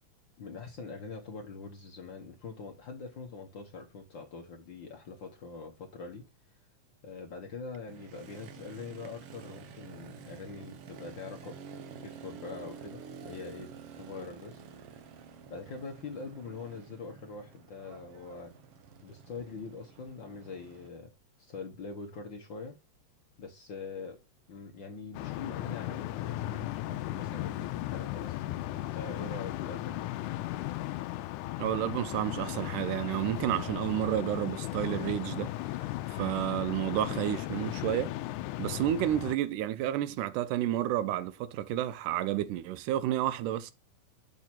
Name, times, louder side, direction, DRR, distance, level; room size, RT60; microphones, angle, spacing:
voice 1, 0.4-6.3 7.0-11.6 12.0-13.7 14.0-14.6 15.5-18.5 19.0-21.1 21.4-22.7 23.4-24.2 24.5-30.1, left 4 dB, 65° left, 1.2 m, -43 dB
Motorcycle, 7.9-20.9, right 6 dB, 65° right, 1.5 m, -49 dB
sound 1, 25.1-39.4, left 16 dB, 80° left, 2.0 m, -36 dB
voice 2, 31.6-35.5 36.1-38.2 38.6-43.7, right 12 dB, 85° right, 2.2 m, -30 dB
7.4 x 3.8 x 6.1 m
omnidirectional pair, 3.6 m